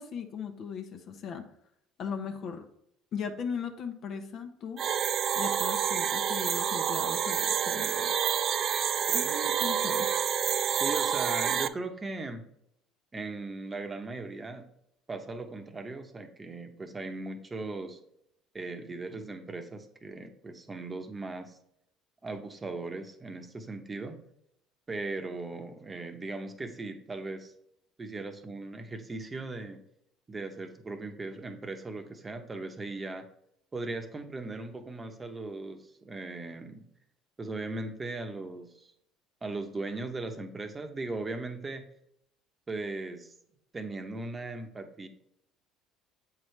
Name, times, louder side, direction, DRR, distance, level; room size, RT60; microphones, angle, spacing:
voice 1, 0.0-1.5 2.0-2.7 3.1-4.8 5.3-8.1 9.1-10.1, left 6 dB, 55° left, 6 dB, 0.9 m, -38 dB
sound 1, 4.8-11.7, right 8 dB, 50° right, 0.3 m, -28 dB
voice 2, 10.8-12.4 13.1-14.7 15.1-18.0 18.5-21.6 22.2-24.2 24.9-27.5 28.0-29.8 30.3-33.3 33.7-36.8 37.4-38.9 39.4-41.8 42.7-43.3 43.7-45.1, right 3 dB, 25° right, 6 dB, 1.0 m, -38 dB
7.5 x 4.6 x 3.3 m, 0.72 s
supercardioid pair, 80°, 0 cm